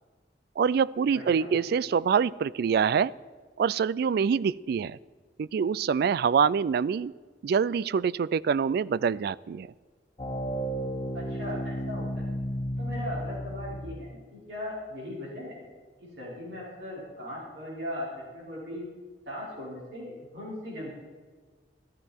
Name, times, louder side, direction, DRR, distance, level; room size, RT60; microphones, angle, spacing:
voice 1, 0.6-3.1 3.6-5.0 5.4-7.1 7.4-9.7, right 6 dB, 60° right, 21 dB, 0.3 m, -25 dB
voice 2, 1.1-1.5 11.1-12.2 12.8-15.6 16.0-18.1 18.3-18.8 19.3-20.9, left 1 dB, 75° right, -5 dB, 5.2 m, -38 dB
sound 1, 10.2-14.1, equal, 25° left, 1.3 m, -33 dB
14.0 x 13.0 x 4.4 m, 1.5 s
head